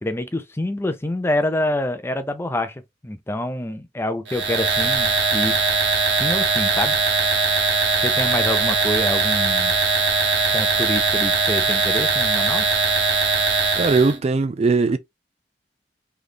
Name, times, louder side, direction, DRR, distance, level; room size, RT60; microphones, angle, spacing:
voice 1, 0.0-5.6 6.1-7.0 8.0-9.7 10.5-12.7, left 1 dB, 15° left, 0.6 m, -26 dB
sound 1, 4.3-14.2, right 4 dB, 85° right, 1.4 m, -20 dB
voice 2, 13.7-15.0, right 4 dB, 35° right, 0.4 m, -19 dB
3.4 x 3.1 x 3.9 m
head